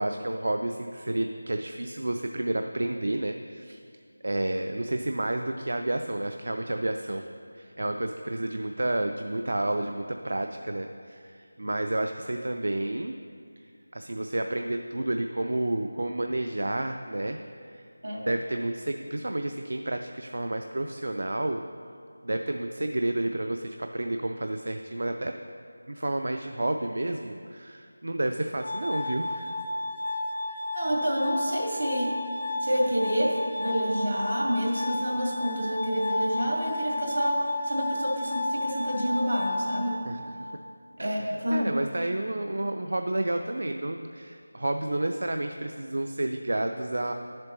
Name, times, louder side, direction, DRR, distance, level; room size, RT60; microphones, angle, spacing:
voice 1, 0.0-3.8 4.2-7.3 7.5-13.1 13.9-17.9 18.3-21.6 22.2-25.4 25.9-29.6 40.0-40.5 41.0-47.1, right 1 dB, 65° right, 6 dB, 0.3 m, -30 dB
Glass, 28.6-40.6, left 1 dB, 35° left, 0.4 m, -32 dB
voice 2, 30.7-32.1 32.6-40.0 41.0-41.7, equal, 85° right, -2 dB, 2.0 m, -28 dB
10.5 x 7.4 x 3.0 m, 2.3 s
figure-of-eight pair, 175°, 0 cm